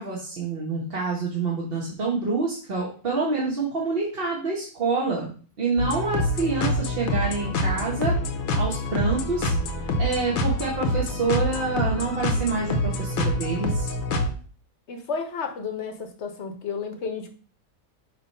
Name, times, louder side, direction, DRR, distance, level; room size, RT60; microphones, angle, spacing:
voice 1, 0.0-5.3 5.6-8.2 8.6-9.5 9.8-13.9, right 4 dB, 45° right, -4 dB, 1.3 m, -27 dB
sound 1, 5.8-14.3, left 1 dB, 75° left, 1.3 m, -26 dB
voice 2, 14.9-17.3, left 5 dB, 55° left, 6 dB, 1.1 m, -32 dB
5.9 x 3.1 x 5.3 m, 0.41 s
omnidirectional pair, 1.5 m